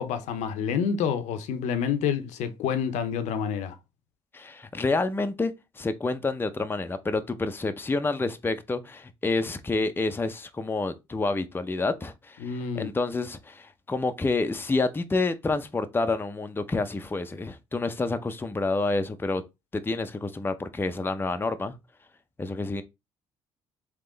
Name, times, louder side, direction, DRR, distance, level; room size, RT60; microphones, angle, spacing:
voice 1, 0.0-3.8 12.4-12.9, left 7 dB, 75° left, 0.7 m, -28 dB
voice 2, 4.3-19.4 19.7-21.7 22.4-22.8, left 3 dB, 20° left, 0.6 m, -28 dB
3.7 x 2.9 x 3.8 m
supercardioid pair, 65°, 12 cm